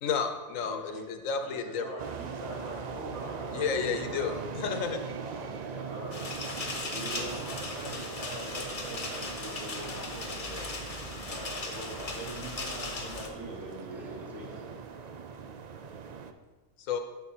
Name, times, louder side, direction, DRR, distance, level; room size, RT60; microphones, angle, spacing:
voice 1, 0.0-1.8 3.5-5.0 16.8-17.0, left 6 dB, 80° left, 7 dB, 1.1 m, -31 dB
voice 2, 0.6-1.0 1.4-4.7 5.8-6.1 6.9-10.6 11.1-14.4, right 1 dB, 65° right, -2 dB, 2.0 m, -42 dB
sound 1, 2.0-16.3, right 5 dB, 80° right, 0.3 m, -41 dB
voice 3, 5.2-6.3 7.1-7.3 13.9-15.3, right 1 dB, ahead, -3 dB, 1.4 m, -49 dB
sound 2, 6.1-13.3, left 3 dB, 35° left, 0.8 m, -38 dB
11.5 x 4.2 x 4.2 m, 1.2 s
omnidirectional pair, 1.3 m